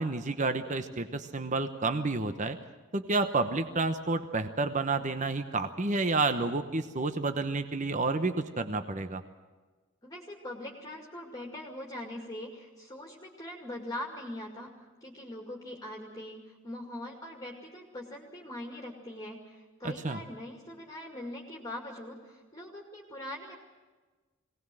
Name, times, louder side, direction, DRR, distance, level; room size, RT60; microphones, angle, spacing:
voice 1, 0.0-2.6 2.9-9.2 19.8-20.2, right 3 dB, 35° right, 9 dB, 1.0 m, -30 dB
voice 2, 10.0-14.7 15.0-23.5, left 1 dB, 20° left, 0 dB, 2.4 m, -42 dB
22.0 x 18.5 x 7.7 m, 1.3 s
head